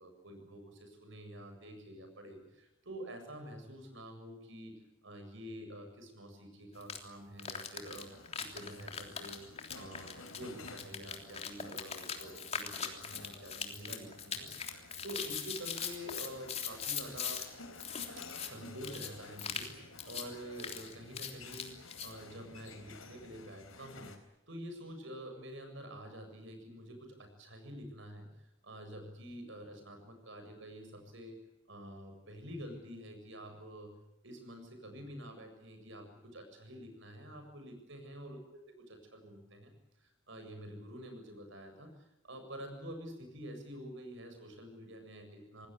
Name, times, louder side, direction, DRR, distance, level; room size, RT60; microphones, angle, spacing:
voice 1, 0.0-8.1 8.4-14.5 14.7-17.4 18.4-21.8 22.0-24.1 24.5-28.3 28.6-31.4 31.7-33.9 34.2-39.7 40.0-45.7, equal, 65° right, 6 dB, 7.7 m, -48 dB
sound 1, 6.8-7.0 7.4-17.5 17.7-18.5 18.8-19.1 19.4-19.7 20.0-20.3 20.6-22.1, left 7 dB, 30° left, 3.4 m, -40 dB
sound 2, 7.9-24.2, left 3 dB, 80° left, 4.5 m, -53 dB
27.0 x 20.0 x 8.3 m, 0.89 s
head